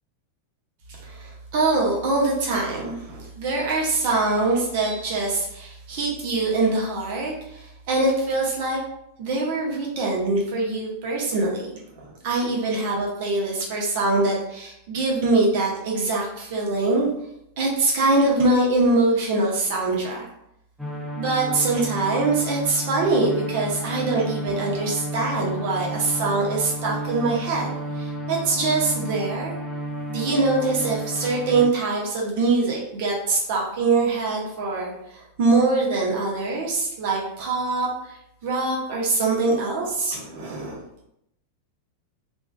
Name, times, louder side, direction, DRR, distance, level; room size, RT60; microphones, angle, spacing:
voice 1, 1.0-8.8 9.2-17.1 17.6-20.2 21.1-29.5 30.1-38.2 38.4-40.8, right 3 dB, 50° right, -2 dB, 0.9 m, -23 dB
sound 1, 20.8-31.6, equal, ahead, 0.7 m, -32 dB
3.4 x 2.6 x 2.3 m, 0.79 s
figure-of-eight pair, 90°, 0 cm